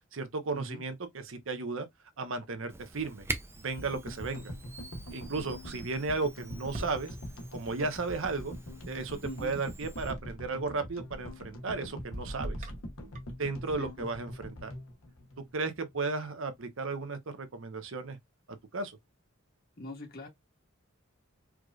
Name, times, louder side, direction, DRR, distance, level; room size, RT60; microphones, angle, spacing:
voice 1, 0.1-1.9 2.2-3.2 3.6-4.5 5.1-7.2 7.5-8.5 8.9-12.7 13.4-14.7 15.4-18.2 18.7-19.0, right 3 dB, 65° right, 0.8 m, -34 dB
Camera, 2.7-10.1, right 3 dB, 10° right, 0.5 m, -45 dB
sound 1, 3.8-16.1, equal, 75° left, 1.0 m, -44 dB
sound 2, 6.7-7.8 10.1-10.6 12.1-13.4, right 1 dB, 35° right, 1.3 m, -43 dB
voice 2, 19.8-20.3, equal, 50° left, 1.5 m, -42 dB
4.6 x 2.5 x 2.3 m
head